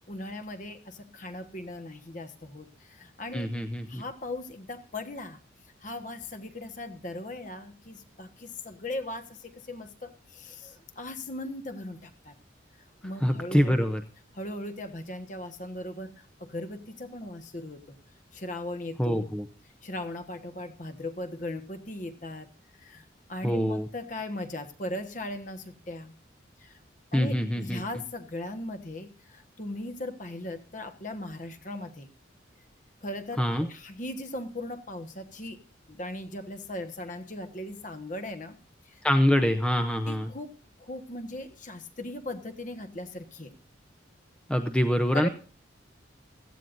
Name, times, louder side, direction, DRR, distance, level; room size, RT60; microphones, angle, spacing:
voice 1, 0.1-3.5 3.9-5.4 5.8-12.3 13.0-13.9 14.3-18.0 18.3-19.4 19.8-22.5 22.7-26.1 26.6-26.8 27.1-32.1 33.0-35.6 35.9-38.6 38.9-39.0 40.1-40.5 40.8-43.5 45.1-45.3, left 1 dB, 40° left, 9 dB, 1.3 m, -38 dB
voice 2, 3.3-4.0 13.2-14.0 19.0-19.4 23.4-23.9 27.1-27.8 33.4-33.7 39.0-40.3 44.5-45.3, equal, 5° left, 8 dB, 0.6 m, -25 dB
17.0 x 14.0 x 2.6 m, 0.39 s
head